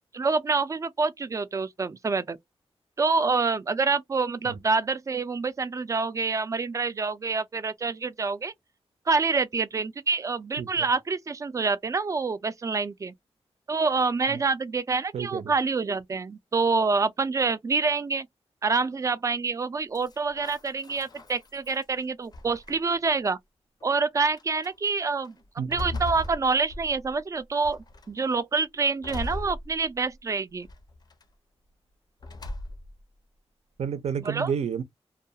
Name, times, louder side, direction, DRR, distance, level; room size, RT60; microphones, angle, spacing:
voice 1, 0.1-2.4 3.0-8.5 9.1-13.1 13.7-18.3 18.6-23.4 23.8-25.4 25.7-30.7 34.3-34.5, right 4 dB, 30° right, 0.3 m, -27 dB
voice 2, 15.1-15.5 25.6-26.0 33.8-34.8, right 7 dB, 80° right, 0.5 m, -31 dB
sound 1, 19.9-21.8 22.3-23.1 23.8-23.9 24.4-24.7 25.2-27.2 27.6-28.2 29.0-30.2 30.6-31.2 32.2-33.0, left 2 dB, 40° left, 0.4 m, -38 dB
2.3 x 2.2 x 2.7 m
wide cardioid pair, 160°, 11 cm